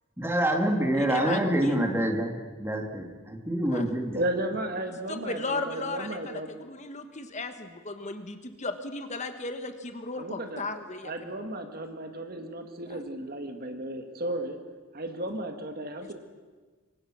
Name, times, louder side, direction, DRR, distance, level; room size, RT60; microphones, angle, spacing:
voice 1, 0.2-4.2, right 1 dB, 10° right, 2 dB, 2.7 m, -27 dB
voice 2, 0.9-1.8 3.7-3.8 5.1-11.3 12.9-13.0 16.0-16.1, left 3 dB, 35° left, 7 dB, 1.4 m, -36 dB
voice 3, 4.1-6.5 10.2-10.6 11.0-14.6 14.9-16.1, right 1 dB, 45° right, 6 dB, 2.0 m, -34 dB
27.5 x 24.0 x 6.4 m, 1.4 s
head